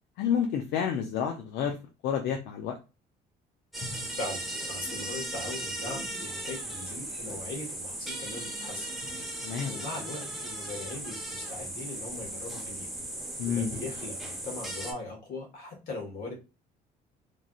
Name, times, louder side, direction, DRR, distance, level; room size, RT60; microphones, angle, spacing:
voice 1, 0.2-1.8 2.0-2.8 9.4-9.7 13.4-13.7, left 8 dB, 80° left, 5 dB, 0.5 m, -29 dB
sound 1, 3.7-14.9, right 1 dB, ahead, 1.1 m, -37 dB
voice 2, 4.7-8.9 9.4-12.9 13.5-16.3, left 2 dB, 60° left, 0 dB, 1.5 m, -40 dB
3.1 x 2.5 x 2.4 m, 0.30 s
cardioid pair, 110°, 17 cm